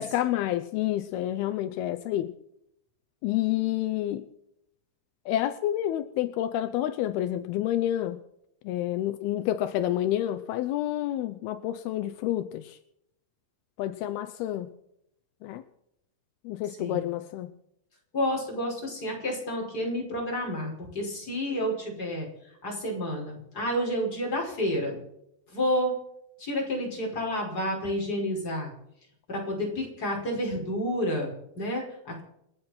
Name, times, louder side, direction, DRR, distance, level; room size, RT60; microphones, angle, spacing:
voice 1, 0.0-2.3 3.2-4.2 5.3-8.2 8.6-12.8 13.8-14.7 15.4-15.6 16.4-17.5, left 13 dB, 85° left, 10 dB, 2.3 m, -29 dB
voice 2, 18.1-22.3 22.6-25.0 25.5-26.0 26.4-28.7 29.3-32.2, equal, 20° left, -1 dB, 5.5 m, -30 dB
29.0 x 9.6 x 4.4 m, 0.77 s
omnidirectional pair, 5.5 m